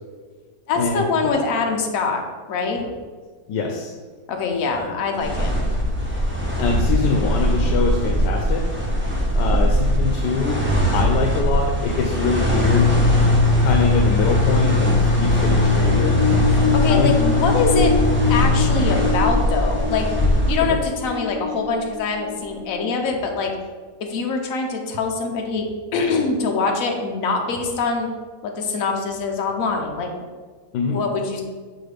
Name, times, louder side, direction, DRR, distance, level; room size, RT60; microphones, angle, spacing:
voice 1, 0.7-2.2 2.5-2.9 4.3-5.6 16.5-17.9 18.3-23.5 24.0-25.7 25.9-28.1 28.4-30.1 30.9-31.4, left 4 dB, 60° left, 2 dB, 1.1 m, -24 dB
voice 2, 3.5-3.9 4.7-5.0 6.6-8.7 9.4-10.6 10.9-12.9 13.6-16.2 16.9-17.1 20.6-20.8 30.7-31.0, left 4 dB, 90° left, 3 dB, 1.2 m, -24 dB
sound 1, 5.2-20.6, left 1 dB, 10° right, 0.7 m, -20 dB
sound 2, 10.1-13.2, right 1 dB, 55° right, 1.6 m, -28 dB
sound 3, 15.3-22.9, left 6 dB, 15° left, 1.7 m, -26 dB
6.5 x 4.6 x 3.4 m, 1.5 s
omnidirectional pair, 1.8 m